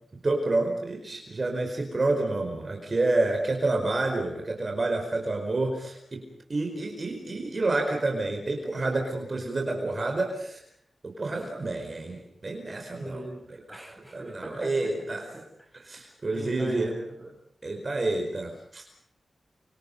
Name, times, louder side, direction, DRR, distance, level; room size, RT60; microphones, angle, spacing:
voice 1, 0.2-6.2 6.5-10.6 11.0-13.2 14.1-15.3 15.8-16.9 17.6-18.8, right 2 dB, 35° right, 2 dB, 4.8 m, -29 dB
voice 2, 13.0-15.1 15.3-15.8 16.3-17.4, right 1 dB, ahead, 1 dB, 7.7 m, -40 dB
30.0 x 26.5 x 5.5 m, 0.68 s
wide cardioid pair, 155°, 0 cm